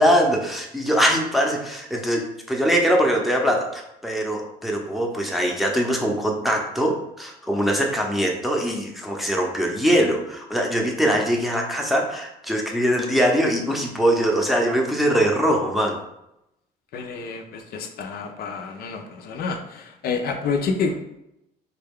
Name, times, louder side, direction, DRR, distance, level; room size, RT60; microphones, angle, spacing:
voice 1, 0.0-16.0, equal, ahead, 0 dB, 0.6 m, -22 dB
voice 2, 16.9-21.0, left 4 dB, 65° left, 4 dB, 0.5 m, -28 dB
3.9 x 2.2 x 3.5 m, 0.85 s
cardioid pair, 110°, 17 cm